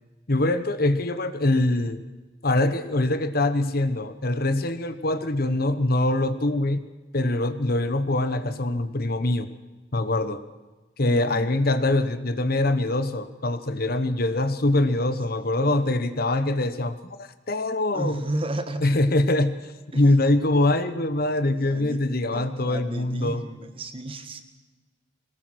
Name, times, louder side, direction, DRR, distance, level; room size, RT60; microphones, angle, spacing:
voice 1, 0.3-2.0 2.4-9.5 9.9-10.4 11.0-18.2 18.8-19.6 19.9-23.4, left 2 dB, 50° left, 12 dB, 1.1 m, -23 dB
voice 2, 11.1-11.5 15.6-15.9 17.9-18.9 19.9-20.1 21.5-24.4, right 1 dB, 30° right, 9 dB, 1.6 m, -34 dB
22.5 x 19.0 x 6.3 m, 1.2 s
head